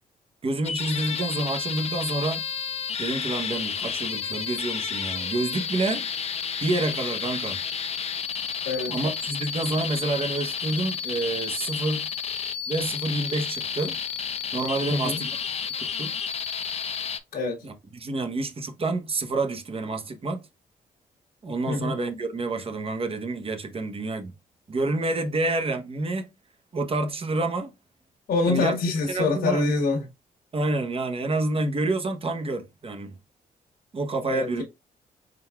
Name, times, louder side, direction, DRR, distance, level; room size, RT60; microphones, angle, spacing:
voice 1, 0.4-2.4 3.0-6.1 6.6-7.6 8.9-12.1 12.7-14.0 14.5-15.3 15.8-16.1 17.6-20.4 21.4-24.3 24.7-26.3 26.7-27.7 28.5-28.7 29.1-29.6 30.5-33.2 33.9-34.6, right 2 dB, 40° right, 0.9 m, -28 dB
sound 1, 0.6-17.2, left 7 dB, 45° left, 0.6 m, -31 dB
voice 2, 14.9-15.2 17.3-17.6 21.7-21.9 28.3-30.0 34.3-34.6, left 3 dB, 75° left, 1.2 m, -25 dB
4.5 x 3.9 x 2.3 m
cardioid pair, 90°, 16 cm